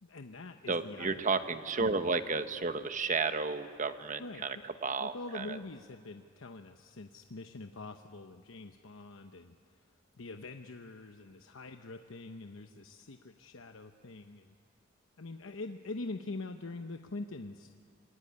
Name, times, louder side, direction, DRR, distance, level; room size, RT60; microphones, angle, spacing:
voice 1, 0.0-1.2 1.7-2.0 4.2-4.7 5.0-9.6 10.2-14.5 15.2-17.8, left 2 dB, 85° left, 6 dB, 0.9 m, -44 dB
voice 2, 0.7-4.6 4.8-5.6, right 4 dB, 40° right, 10 dB, 1.1 m, -32 dB
26.0 x 21.0 x 9.7 m, 2.2 s
head